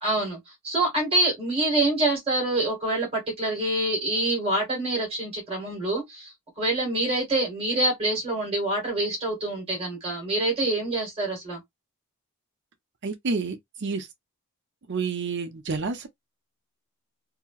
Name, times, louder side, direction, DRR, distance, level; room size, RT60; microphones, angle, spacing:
voice 1, 0.0-0.4 0.6-11.6, right 2 dB, 25° right, 1.7 m, -26 dB
voice 2, 13.0-14.1 14.9-16.1, right 4 dB, 55° right, 0.6 m, -29 dB
2.9 x 2.7 x 2.4 m
head